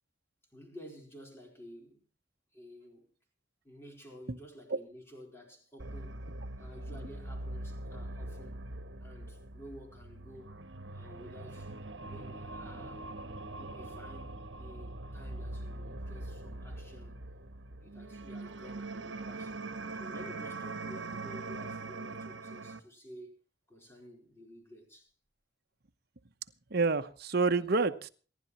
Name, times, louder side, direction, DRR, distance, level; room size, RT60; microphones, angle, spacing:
voice 1, 0.5-2.0 2.5-3.1 3.6-6.2 6.6-8.6 9.0-10.5 10.9-11.7 12.0-13.1 13.6-17.2 17.7-19.6 19.9-23.4 23.7-25.1, equal, 15° left, 4.2 m, -52 dB
sound 1, 5.8-22.8, right 2 dB, 75° right, 1.2 m, -42 dB
voice 2, 26.7-28.1, right 4 dB, 55° right, 1.0 m, -28 dB
28.0 x 11.0 x 3.0 m
head